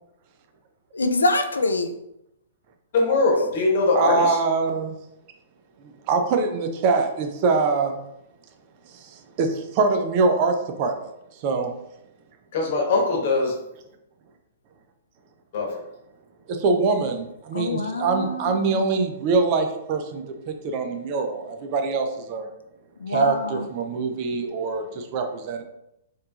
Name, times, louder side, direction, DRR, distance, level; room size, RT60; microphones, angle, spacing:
voice 1, 0.9-2.0 17.5-18.8 23.0-23.7, left 2 dB, 75° left, 7 dB, 0.3 m, -25 dB
voice 2, 2.9-4.4 12.5-13.6 15.5-15.8, left 3 dB, 50° left, 0 dB, 1.1 m, -21 dB
voice 3, 3.9-4.9 5.8-8.0 8.9-11.1 11.4-11.7 16.5-22.5 23.1-25.6, right 4 dB, 40° right, 5 dB, 0.6 m, -24 dB
4.5 x 3.1 x 2.4 m, 0.84 s
figure-of-eight pair, 115°, 0 cm